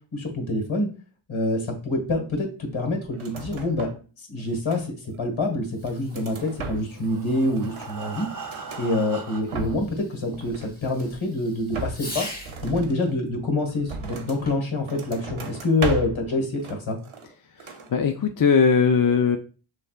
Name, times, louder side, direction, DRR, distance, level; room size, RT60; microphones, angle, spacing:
voice 1, 0.1-0.9 1.3-3.9 4.2-8.3 8.8-12.3 12.6-17.0, left 2 dB, 70° left, 3 dB, 1.5 m, -26 dB
sound 1, 3.1-4.1 4.4-5.2 5.7-7.1 7.4-8.9 9.3-10.0 10.3-11.2 11.7-14.5 14.9-16.3 16.6-17.3 17.6-17.9, right 3 dB, 75° right, 0.9 m, -36 dB
Fireworks, 5.6-12.7 14.3-14.8, left 1 dB, 20° left, 2.5 m, -43 dB
Breathing, 6.8-9.8 10.5-10.6 11.0-11.1 11.5-11.6, right 4 dB, 40° right, 0.6 m, -39 dB
voice 2, 17.6-19.4, left 6 dB, 45° left, 6 dB, 0.4 m, -20 dB
6.5 x 3.3 x 2.4 m, 0.35 s
wide cardioid pair, 85°, 49 cm